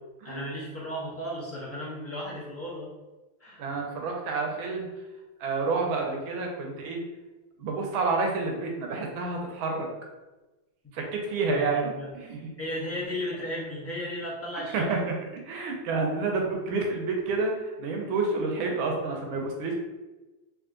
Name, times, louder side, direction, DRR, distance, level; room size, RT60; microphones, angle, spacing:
voice 1, 0.2-2.9 3.4-3.6 10.8-10.9 11.4-12.1 12.6-14.9, equal, 20° left, -7 dB, 0.3 m, -35 dB
voice 2, 3.6-4.9 5.4-7.0 7.6-9.9 10.9-12.4 14.7-19.7, right 3 dB, 80° right, 1 dB, 1.5 m, -29 dB
3.7 x 2.9 x 3.7 m, 1.1 s
omnidirectional pair, 2.3 m